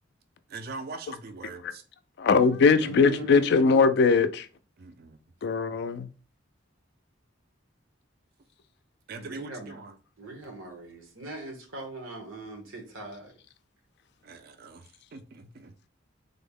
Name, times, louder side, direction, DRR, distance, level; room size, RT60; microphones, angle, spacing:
voice 1, 0.5-1.8 4.8-5.2 9.1-10.0 14.2-15.8, right 3 dB, 50° right, 0.4 m, -42 dB
voice 2, 2.2-4.5 5.4-6.1, left 5 dB, 60° left, 0.3 m, -21 dB
voice 3, 2.8-3.8 9.2-9.8 10.2-13.3, right 3 dB, 85° right, 1.0 m, -40 dB
3.5 x 2.0 x 3.6 m
head